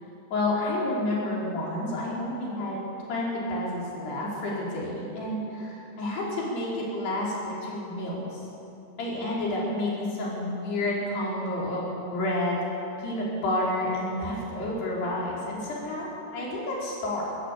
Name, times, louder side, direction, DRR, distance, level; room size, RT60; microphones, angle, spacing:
voice 1, 0.3-8.4 9.0-12.7 13.0-17.2, left 1 dB, 85° left, -5 dB, 6.8 m, -30 dB
22.5 x 15.0 x 8.5 m, 2.9 s
omnidirectional pair, 4.6 m